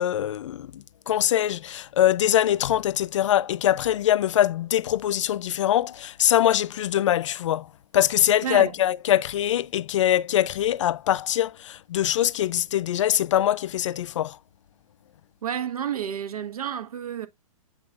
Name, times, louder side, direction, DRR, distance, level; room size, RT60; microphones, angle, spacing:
voice 1, 0.0-7.7 7.9-14.4, left 11 dB, 55° left, 0.4 m, -23 dB
voice 2, 8.4-8.7 15.4-17.3, right 9 dB, 90° right, 1.2 m, -30 dB
8.6 x 5.6 x 2.4 m
hypercardioid pair, 165°, 18 cm